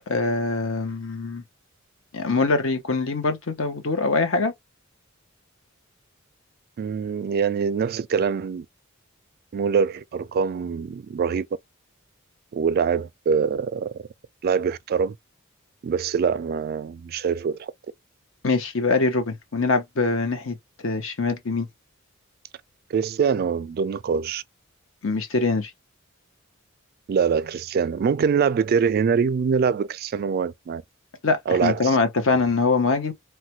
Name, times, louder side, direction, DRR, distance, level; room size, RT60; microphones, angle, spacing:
voice 1, 0.1-1.4 2.1-4.5 18.4-20.6 20.8-21.7 25.0-25.7 31.2-33.1, left 3 dB, 65° left, 0.8 m, -23 dB
voice 2, 6.8-8.7 9.5-11.5 12.5-13.9 14.4-15.2 15.8-17.7 22.9-24.4 27.1-30.8 31.5-32.0, right 6 dB, 45° right, 0.3 m, -24 dB
3.1 x 2.2 x 2.9 m
head